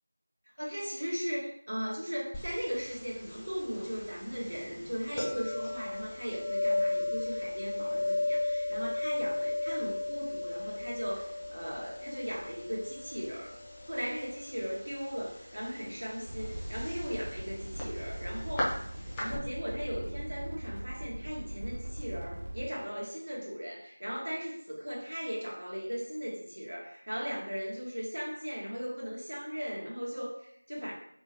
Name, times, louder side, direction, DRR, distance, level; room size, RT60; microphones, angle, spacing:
voice 1, 0.6-13.5 13.8-30.9, equal, 70° right, -3 dB, 1.7 m, -37 dB
sound 1, 2.3-19.4, left 2 dB, 5° left, 0.4 m, -36 dB
sound 2, 16.2-22.6, right 1 dB, 55° right, 1.5 m, -40 dB
3.9 x 3.6 x 3.0 m, 0.66 s
figure-of-eight pair, 175°, 0 cm